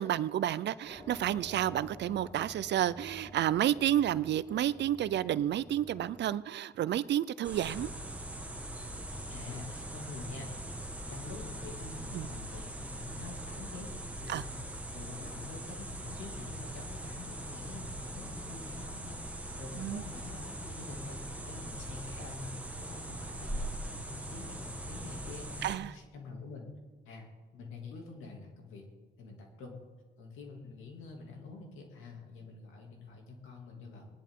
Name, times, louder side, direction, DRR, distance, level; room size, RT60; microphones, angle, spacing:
voice 1, 0.0-7.9 12.1-12.3 14.3-14.4 19.8-20.0 25.6-25.9, right 11 dB, 60° right, 17 dB, 0.5 m, -30 dB
sound 1, 0.9-6.3, left 1 dB, 20° left, 1.5 m, -51 dB
Forest closer to silence, 7.4-25.8, right 1 dB, 5° right, 1.4 m, -41 dB
voice 2, 9.3-10.7 11.0-13.9 14.2-14.6 14.9-19.3 19.5-22.5 22.8-26.7 27.0-27.3 27.5-28.8 29.2-29.8 30.2-34.1, left 3 dB, 90° left, 1 dB, 2.6 m, -46 dB
19.0 x 11.0 x 3.7 m, 1.4 s
cardioid pair, 90°, 20 cm